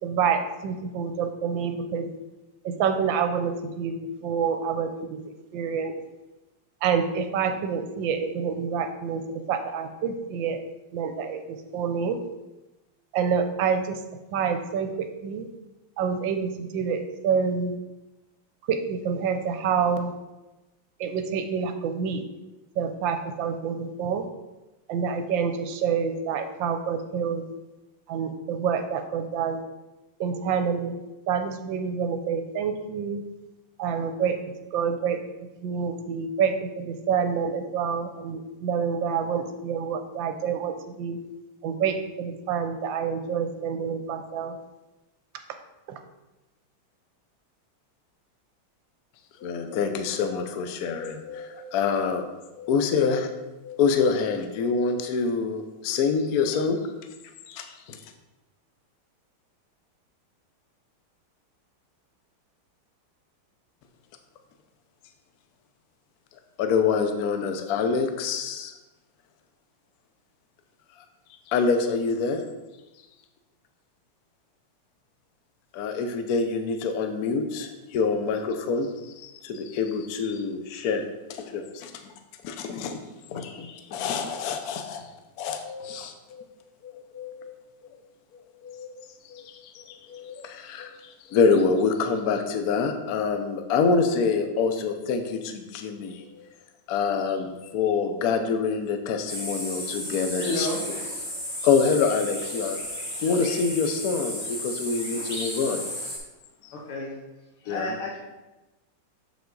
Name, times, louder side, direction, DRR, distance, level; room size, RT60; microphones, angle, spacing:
voice 1, 0.0-2.1 2.6-5.2 5.5-5.9 6.8-10.6 10.9-12.2 13.1-14.0 14.3-15.5 16.0-17.7 18.7-20.1 21.0-22.2 22.8-24.3 24.9-27.4 28.1-29.6 30.2-31.0 31.3-33.2 33.8-34.4 34.7-35.2 35.6-41.2 41.6-44.6 45.9-46.0, right 6 dB, 75° right, 7 dB, 1.2 m, -27 dB
voice 2, 49.4-52.2 52.5-53.3 53.6-56.8 57.5-58.0 66.6-68.7 71.5-72.4 75.7-82.1 82.4-83.0 83.3-85.0 85.4-86.4 86.8-87.5 88.6-96.5 96.9-100.7 101.6-102.8 103.2-105.8 106.6-106.7 107.7-108.0, left 5 dB, 65° left, 6 dB, 0.9 m, -26 dB
sound 1, 99.3-106.2, equal, 20° left, 1.9 m, -34 dB
voice 3, 100.4-100.8 106.7-107.1 107.6-108.2, left 2 dB, 85° left, -2 dB, 2.1 m, -31 dB
7.1 x 5.1 x 3.9 m, 1.1 s
omnidirectional pair, 2.3 m